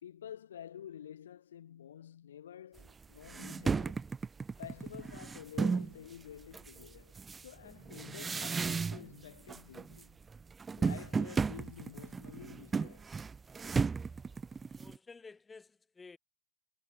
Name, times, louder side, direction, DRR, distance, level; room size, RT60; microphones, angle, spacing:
voice 1, 0.0-4.1 4.6-7.2 7.4-10.1 10.8-13.1, left 10 dB, 65° left, 0.5 m, -50 dB
sound 1, 2.8-2.9 3.2-5.9 6.5-9.2 9.5-10.0 10.3-15.0, right 5 dB, 15° right, 0.3 m, -35 dB
voice 2, 14.7-16.2, left 4 dB, 15° left, 1.4 m, -53 dB
figure-of-eight pair, 90°, 0 cm